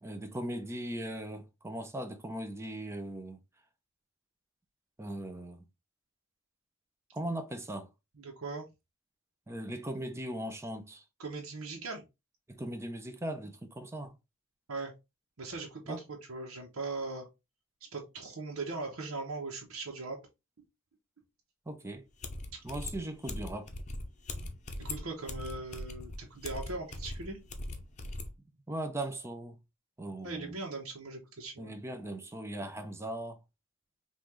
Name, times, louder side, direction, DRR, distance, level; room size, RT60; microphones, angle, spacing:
voice 1, 0.0-3.4 5.0-5.6 7.1-7.9 9.5-11.0 12.5-14.1 15.9-16.0 21.7-22.0 22.6-23.7 28.7-29.6 30.0-30.5 31.6-33.4, right 1 dB, 15° right, 0.5 m, -39 dB
voice 2, 8.1-8.6 11.2-12.0 14.7-14.9 15.4-17.3 17.9-20.2 22.5-22.6 24.8-27.4 30.2-31.8, right 3 dB, 90° right, 1.0 m, -39 dB
sound 1, 22.2-28.3, left 2 dB, 35° left, 0.7 m, -40 dB
5.6 x 2.5 x 3.1 m
head